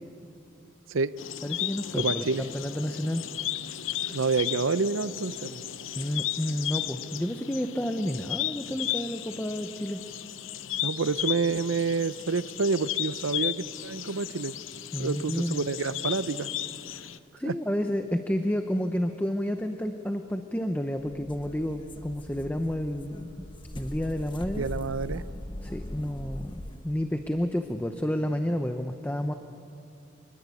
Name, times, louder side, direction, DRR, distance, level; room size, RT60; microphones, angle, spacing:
sound 1, 1.2-17.2, left 12 dB, 80° left, 0.7 m, -35 dB
voice 1, 1.4-3.2 6.0-10.0 14.9-15.7 16.9-17.1 17.4-23.5 23.8-24.7 25.6-29.3, equal, 10° left, 6 dB, 0.8 m, -30 dB
voice 2, 2.0-2.5 4.1-5.6 10.8-14.5 15.0-16.5 17.5-17.6 24.6-25.2, right 4 dB, 90° right, 15 dB, 0.7 m, -28 dB
sound 2, 21.1-27.0, left 1 dB, 25° left, 1.2 m, -40 dB
25.5 x 21.0 x 8.4 m, 2.5 s
head